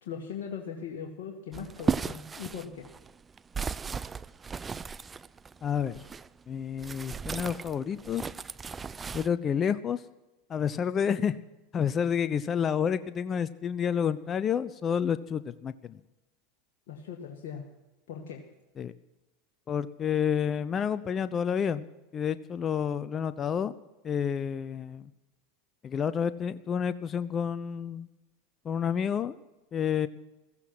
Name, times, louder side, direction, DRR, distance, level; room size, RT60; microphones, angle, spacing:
voice 1, 0.0-2.9 16.9-17.6 18.1-18.4, left 7 dB, 65° left, 1 dB, 1.9 m, -39 dB
sound 1, 1.5-6.3 6.8-9.3, right 5 dB, 20° right, 0.5 m, -35 dB
voice 2, 5.6-6.0 6.5-8.2 9.1-10.0 10.5-11.4 11.7-16.0 18.8-18.9 19.7-21.9 22.1-23.7 24.0-25.1 25.8-28.1 28.6-29.4 29.7-30.1, left 7 dB, 30° left, 15 dB, 0.6 m, -29 dB
15.5 x 15.0 x 6.1 m, 1.0 s
hypercardioid pair, 85°, 0 cm